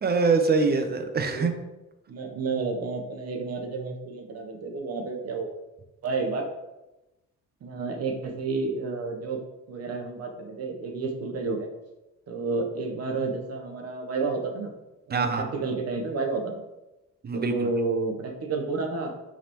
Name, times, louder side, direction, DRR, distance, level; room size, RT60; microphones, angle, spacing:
voice 1, 0.0-1.5 15.1-15.4 17.2-17.7, right 4 dB, 35° right, 7 dB, 0.6 m, -24 dB
voice 2, 2.1-5.5 6.0-6.4 7.6-9.4 9.7-11.7 12.3-14.7 15.1-16.5 17.3-19.3, right 4 dB, 55° right, 3 dB, 0.9 m, -30 dB
4.8 x 3.4 x 3.0 m, 1.0 s
cardioid pair, 90°, 30 cm